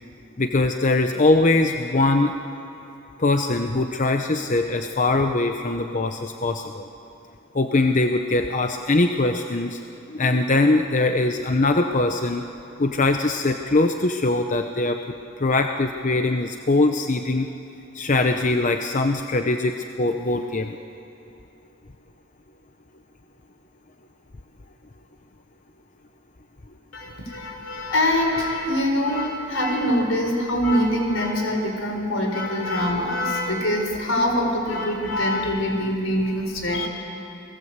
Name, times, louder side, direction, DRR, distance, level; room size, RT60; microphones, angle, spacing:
voice 1, 0.4-2.3 3.2-6.8 7.5-9.8 10.1-12.4 12.8-15.1 15.4-17.5 17.9-20.8, left 2 dB, 35° left, 6 dB, 0.7 m, -22 dB
voice 2, 26.9-36.9, left 1 dB, 75° left, 2 dB, 4.5 m, -24 dB
28.5 x 19.0 x 8.1 m, 2.9 s
head